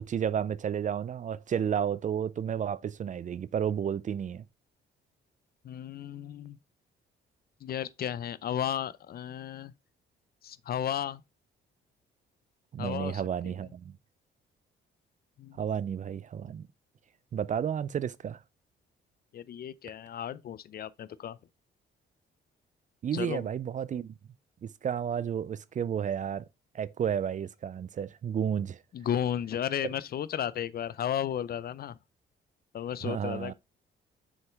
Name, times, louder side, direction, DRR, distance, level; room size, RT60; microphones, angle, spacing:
voice 1, 0.0-4.4 12.7-13.9 15.6-16.7 17.3-18.4 23.0-24.1 24.6-26.4 26.7-28.8 33.0-33.5, right 8 dB, 40° right, 0.4 m, -32 dB
voice 2, 5.6-6.6 7.6-9.7 10.4-11.2 12.8-13.6 15.4-15.6 19.3-21.4 23.1-23.5 28.9-32.0 32.7-33.5, left 10 dB, 50° left, 0.5 m, -34 dB
6.3 x 4.6 x 3.4 m
cardioid pair, 90°, 20 cm